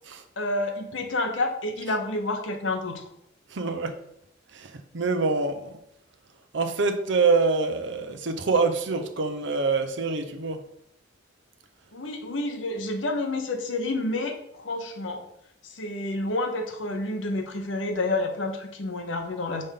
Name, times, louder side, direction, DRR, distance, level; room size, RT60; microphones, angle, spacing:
voice 1, 0.4-3.1 11.9-15.2 15.6-19.6, left 2 dB, 80° left, 1.0 m, -29 dB
voice 2, 3.5-4.0 4.5-5.7 6.5-10.6, right 4 dB, 70° right, 0.8 m, -25 dB
5.2 x 3.6 x 5.7 m
head